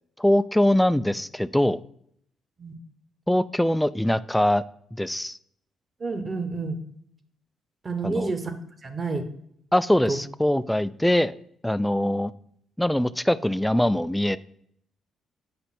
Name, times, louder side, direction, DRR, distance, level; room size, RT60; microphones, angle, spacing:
voice 1, 0.2-1.8 3.3-4.6 4.9-5.4 8.0-8.3 9.7-11.3 11.6-12.3 12.8-14.4, left 1 dB, 5° left, 15 dB, 0.3 m, -22 dB
voice 2, 6.0-6.8 7.8-8.5 8.8-9.2 10.1-10.2 12.0-12.1, right 3 dB, 35° right, 9 dB, 1.0 m, -29 dB
7.9 x 5.4 x 4.2 m, 0.68 s
cardioid pair, 90°, 0 cm